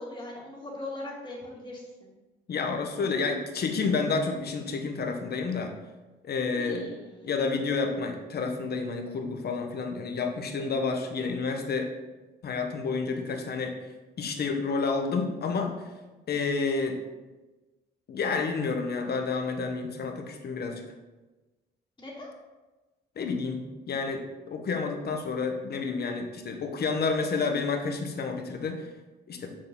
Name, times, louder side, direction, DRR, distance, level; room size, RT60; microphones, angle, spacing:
voice 1, 0.0-2.1 6.6-7.3 11.0-11.3 13.1-13.4 22.0-22.3, left 2 dB, 20° left, -9 dB, 2.5 m, -40 dB
voice 2, 2.5-5.7 6.3-6.9 7.2-11.9 12.4-13.7 14.2-15.7 16.3-17.0 18.1-20.8 23.2-28.8 29.3-29.5, left 4 dB, 55° left, 4 dB, 1.2 m, -30 dB
6.6 x 6.6 x 3.9 m, 1.2 s
cardioid pair, 90°, 20 cm